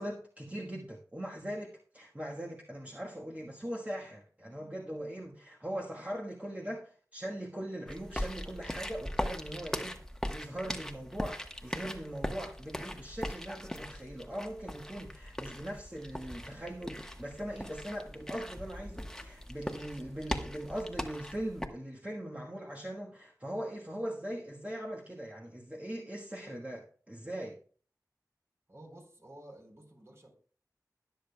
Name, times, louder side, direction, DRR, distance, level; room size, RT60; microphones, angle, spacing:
voice 1, 0.0-10.0 10.3-27.6, right 1 dB, 20° right, 1.4 m, -40 dB
sound 1, 7.9-21.7, equal, 10° left, 1.2 m, -40 dB
voice 2, 28.7-30.3, right 1 dB, 45° right, 3.7 m, -52 dB
20.5 x 6.9 x 2.3 m
wide cardioid pair, 45°, 7 cm